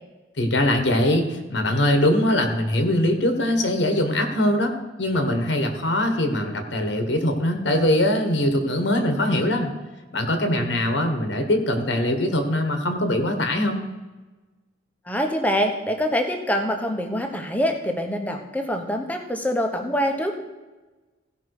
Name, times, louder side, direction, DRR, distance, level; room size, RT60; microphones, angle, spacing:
voice 1, 0.4-4.7 5.0-9.7 10.1-13.9, left 1 dB, 75° left, 5 dB, 1.4 m, -22 dB
voice 2, 15.1-20.4, equal, 10° left, 4 dB, 1.0 m, -25 dB
16.0 x 5.5 x 4.8 m, 1.2 s
head